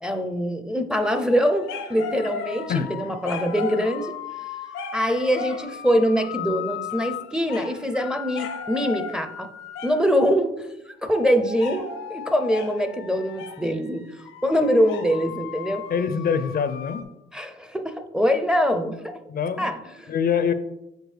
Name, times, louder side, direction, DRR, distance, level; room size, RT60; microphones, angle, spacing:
voice 1, 0.0-4.2 4.9-9.5 9.8-14.0 14.4-15.8 17.3-19.1 19.6-20.1, equal, 5° right, 7 dB, 0.5 m, -23 dB
sound 1, 0.9-10.2 11.1-17.0, left 7 dB, 85° left, 0.8 m, -36 dB
voice 2, 15.9-17.1 19.3-19.6 20.1-20.5, left 7 dB, 50° left, 11 dB, 0.5 m, -24 dB
6.4 x 4.7 x 3.3 m, 0.92 s
cardioid pair, 90°, 20 cm